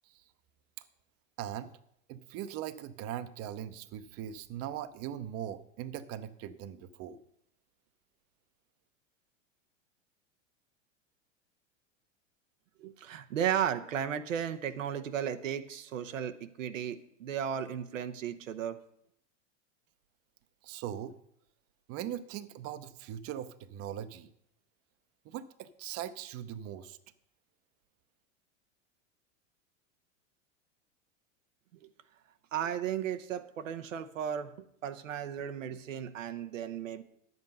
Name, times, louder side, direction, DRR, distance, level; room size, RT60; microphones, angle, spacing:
voice 1, 1.4-1.7 2.1-7.2 20.6-21.2 21.9-24.3 25.2-27.0, right 10 dB, 40° right, 13 dB, 0.7 m, -40 dB
voice 2, 12.8-18.8 32.5-34.5 34.8-37.0, right 9 dB, 90° right, 8 dB, 0.8 m, -35 dB
10.5 x 8.1 x 5.4 m, 0.73 s
hypercardioid pair, 105°, 38 cm